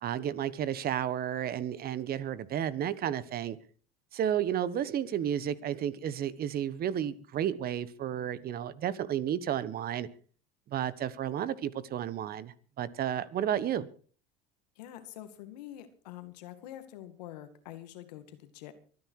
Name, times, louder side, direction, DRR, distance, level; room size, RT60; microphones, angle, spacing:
voice 1, 0.0-3.6 4.1-10.1 10.7-13.9, right 10 dB, 50° right, 1.3 m, -32 dB
voice 2, 14.8-18.7, left 12 dB, 85° left, 2.2 m, -46 dB
24.0 x 9.7 x 4.7 m
supercardioid pair, 90°, 20 cm